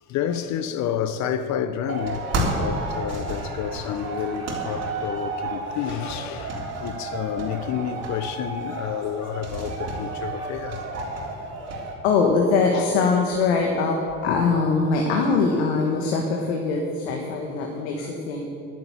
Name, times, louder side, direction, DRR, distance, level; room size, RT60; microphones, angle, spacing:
voice 1, 0.1-2.2 2.5-10.8 12.7-13.0 14.3-14.6, left 9 dB, 65° left, 0.8 m, -30 dB
sound 1, 1.9-11.9, right 2 dB, 55° right, 3.8 m, -31 dB
voice 2, 12.0-14.0 14.2-18.5, left 4 dB, 90° left, 1.6 m, -22 dB
11.0 x 10.5 x 8.4 m
supercardioid pair, 80°, 31 cm